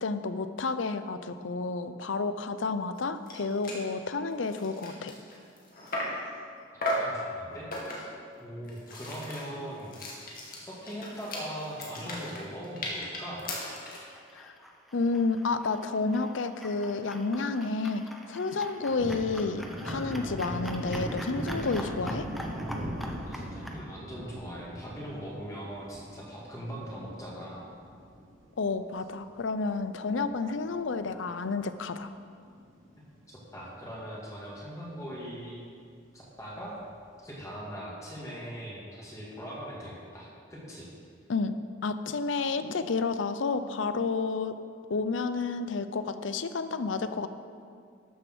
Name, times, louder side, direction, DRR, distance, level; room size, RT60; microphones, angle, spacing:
voice 1, 0.0-5.1 14.3-14.5 14.9-18.0 18.3-22.3 28.6-32.1 41.3-41.6 41.8-44.6 44.9-47.3, left 4 dB, 75° left, 11 dB, 0.6 m, -30 dB
sound 1, 3.0-3.1 3.3-3.4 3.6-3.9 4.3-6.3 6.8-7.2 7.7-8.2 8.6-14.1, left 1 dB, 50° left, 2.2 m, -36 dB
voice 2, 6.7-7.7 7.9-8.0 8.4-10.2 10.6-13.5 23.3-27.6 33.3-35.6 36.1-36.7 37.2-40.9, equal, 15° left, -6 dB, 2.1 m, -41 dB
sound 2, 13.4-23.8, equal, ahead, 0.8 m, -45 dB
Thunder, 18.6-29.3 29.7-29.8 30.1-31.6 31.9-32.1 32.4-33.2 33.6-33.7 34.1-34.2 36.5-37.1, equal, 80° right, 2.8 m, -39 dB
13.0 x 6.7 x 6.2 m, 2.3 s
head